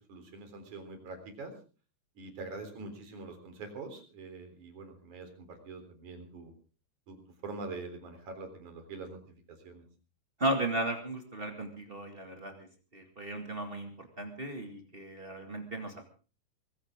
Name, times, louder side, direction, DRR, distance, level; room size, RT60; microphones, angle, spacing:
voice 1, 0.1-1.5 2.2-6.5 7.1-9.8, right 3 dB, 45° right, 6 dB, 4.7 m, -44 dB
voice 2, 10.4-12.7 12.9-16.1, right 1 dB, 60° right, 3 dB, 0.5 m, -35 dB
23.0 x 15.5 x 3.7 m, 0.37 s
omnidirectional pair, 5.2 m